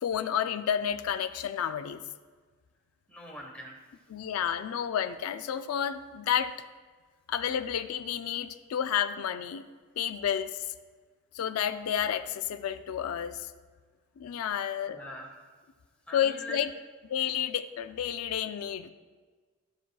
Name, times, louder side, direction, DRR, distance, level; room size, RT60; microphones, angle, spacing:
voice 1, 0.0-2.0 4.1-6.6 7.3-9.6 10.0-10.6 11.3-13.5 14.2-15.0 16.1-16.7 17.1-18.9, left 9 dB, 85° left, 10 dB, 0.3 m, -30 dB
voice 2, 3.1-3.8 14.8-15.3 16.1-16.6, equal, 5° left, -2 dB, 1.2 m, -43 dB
13.0 x 6.0 x 2.3 m, 1.5 s
head